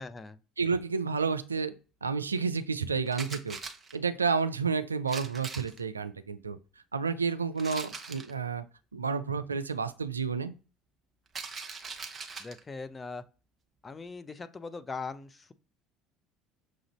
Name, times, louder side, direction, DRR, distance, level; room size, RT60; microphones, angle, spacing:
voice 1, 0.0-0.4 12.4-13.2 13.8-15.5, left 4 dB, 25° left, 0.5 m, -40 dB
voice 2, 0.6-1.7 2.0-3.6 3.9-6.6 6.9-8.6 8.9-10.5, right 5 dB, 90° right, 0.3 m, -30 dB
sound 1, 3.1-4.0 5.1-5.8 7.6-8.3 11.3-12.6, right 4 dB, 30° right, 0.9 m, -41 dB
6.0 x 2.5 x 3.0 m
figure-of-eight pair, 60°, 0 cm